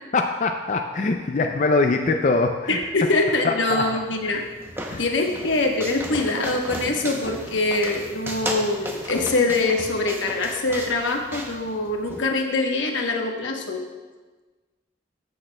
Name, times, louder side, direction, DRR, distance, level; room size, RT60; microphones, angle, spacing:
voice 1, 0.1-2.8 3.4-3.8 4.2-4.4 4.9-5.0, left 3 dB, 40° left, 4 dB, 0.4 m, -23 dB
voice 2, 2.7-4.4 5.0-13.8, left 2 dB, 85° left, 2 dB, 1.0 m, -24 dB
sound 1, 4.0-12.2, right 1 dB, 10° right, 0.6 m, -35 dB
13.5 x 6.4 x 2.2 m, 1.3 s
head